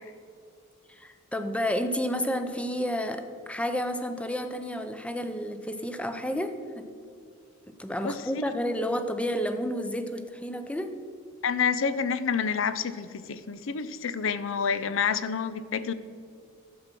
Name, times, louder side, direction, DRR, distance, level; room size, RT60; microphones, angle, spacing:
voice 1, 0.9-6.9 7.7-11.0, equal, 5° left, 8 dB, 0.6 m, -31 dB
voice 2, 8.0-8.4 11.4-15.9, left 6 dB, 65° left, 14 dB, 0.5 m, -28 dB
12.0 x 7.4 x 6.0 m, 2.4 s
head